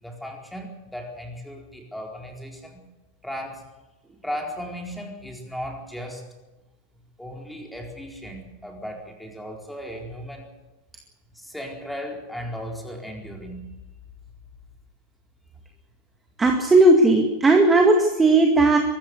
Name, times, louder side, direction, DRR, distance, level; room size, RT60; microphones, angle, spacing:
voice 1, 0.0-2.8 3.2-3.6 4.2-6.2 7.2-10.5 11.3-13.7, equal, ahead, 1 dB, 4.2 m, -36 dB
voice 2, 16.4-18.8, right 2 dB, 15° right, 3 dB, 2.0 m, -16 dB
23.5 x 14.0 x 8.2 m, 1.1 s
figure-of-eight pair, 90°, 0 cm